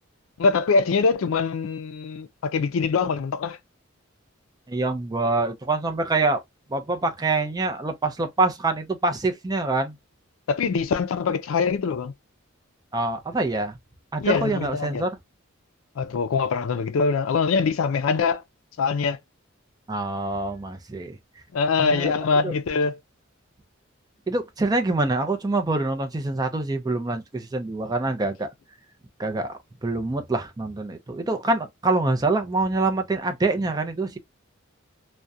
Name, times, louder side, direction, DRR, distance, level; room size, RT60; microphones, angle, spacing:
voice 1, 0.4-3.6 10.5-12.1 14.2-15.0 16.0-18.4 18.8-19.2 21.5-23.0, left 5 dB, 75° left, 0.4 m, -23 dB
voice 2, 4.7-6.4 6.7-10.0 12.9-13.8 14.1-15.2 19.9-21.2 21.8-22.1 22.4-22.5 24.3-28.5 29.2-29.5 29.8-34.2, right 2 dB, 20° right, 0.4 m, -25 dB
2.4 x 2.1 x 2.6 m
head